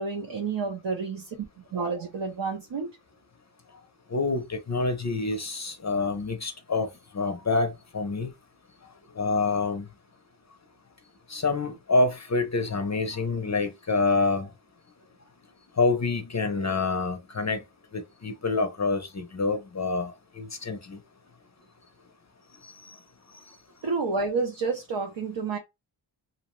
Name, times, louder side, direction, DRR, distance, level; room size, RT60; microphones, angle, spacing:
voice 1, 0.0-1.4 1.7-2.9 23.8-25.6, right 4 dB, 65° right, 0.6 m, -29 dB
voice 2, 4.1-6.9 7.1-8.3 9.2-9.9 11.3-14.5 15.8-17.6 17.9-20.1 20.4-21.0, left 3 dB, 40° left, 0.5 m, -27 dB
2.6 x 2.0 x 3.0 m
wide cardioid pair, 80°, 47 cm